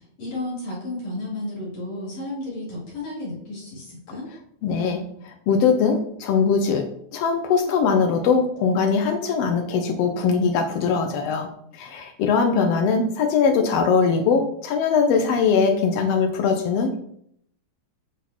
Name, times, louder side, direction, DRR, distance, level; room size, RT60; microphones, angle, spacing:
voice 1, 0.2-4.3, left 2 dB, 55° left, -7 dB, 4.4 m, -32 dB
voice 2, 4.6-11.5 11.7-17.0, left 5 dB, 80° left, 5 dB, 1.4 m, -21 dB
8.1 x 6.0 x 3.0 m, 0.69 s
omnidirectional pair, 3.6 m